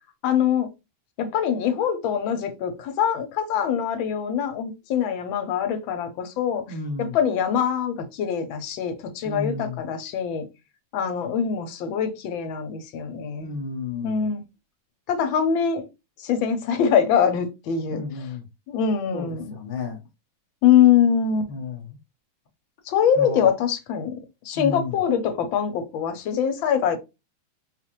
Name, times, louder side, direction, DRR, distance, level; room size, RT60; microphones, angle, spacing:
voice 1, 0.2-0.7 1.2-6.6 7.0-10.5 10.9-13.5 14.0-14.4 15.1-15.9 16.2-18.0 18.7-19.5 20.6-21.5 22.9-24.1 24.4-27.0, left 8 dB, 85° left, 1.4 m, -23 dB
voice 2, 6.7-7.2 9.2-9.8 13.4-14.2 17.9-18.4 19.1-20.0 21.5-22.0 23.1-23.5 24.5-25.0, left 3 dB, 50° left, 0.6 m, -32 dB
4.3 x 2.5 x 2.9 m
omnidirectional pair, 2.1 m